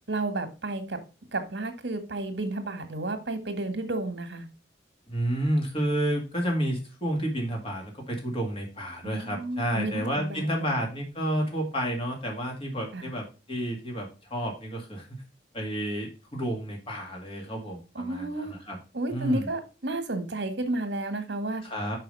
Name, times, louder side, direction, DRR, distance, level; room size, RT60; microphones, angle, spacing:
voice 1, 0.1-1.0 1.3-4.5 9.0-10.8 12.9-13.1 17.9-18.5 18.9-21.6, right 2 dB, 70° right, 8 dB, 1.6 m, -32 dB
voice 2, 5.1-15.2 15.5-18.8 19.1-19.5 21.6-22.0, right 1 dB, 30° left, 0 dB, 2.1 m, -30 dB
5.5 x 5.5 x 5.3 m, 0.31 s
head